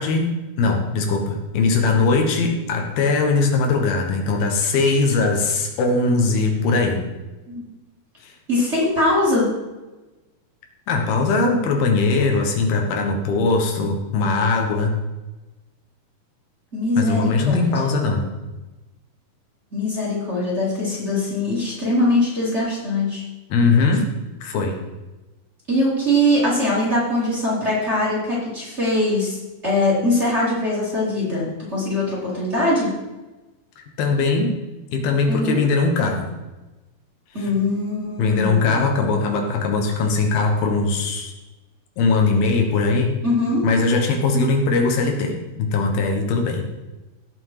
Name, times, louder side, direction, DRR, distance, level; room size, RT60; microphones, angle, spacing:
voice 1, 0.0-7.0 8.2-8.3 10.9-14.9 17.0-18.3 23.5-24.1 24.4-24.8 34.0-34.5 34.9-36.3 37.4-37.5 38.2-41.3 42.0-43.1 43.6-46.6, left 3 dB, 80° left, 3 dB, 3.3 m, -20 dB
voice 2, 8.5-9.5 16.7-17.8 19.7-23.2 25.7-29.4 29.6-32.9 35.3-35.6 37.3-38.8 43.2-43.6, left 1 dB, 20° right, -5 dB, 3.6 m, -21 dB
17.5 x 6.1 x 4.8 m, 1.1 s
omnidirectional pair, 4.4 m